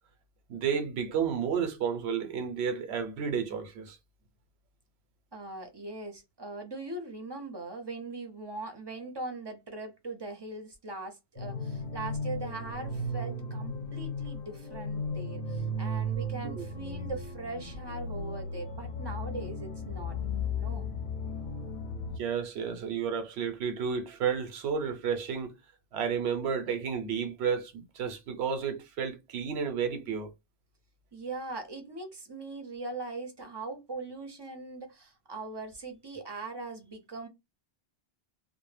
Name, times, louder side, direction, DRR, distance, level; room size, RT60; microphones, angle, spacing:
voice 1, 0.5-4.0 16.4-16.6 22.2-25.5 25.9-30.3, right 7 dB, 90° right, 0.8 m, -31 dB
voice 2, 5.3-20.2 20.6-20.9 31.1-37.3, right 3 dB, 40° right, 0.4 m, -40 dB
sound 1, 11.4-22.2, left 1 dB, 55° left, 0.6 m, -35 dB
2.0 x 2.0 x 3.1 m
omnidirectional pair, 1.1 m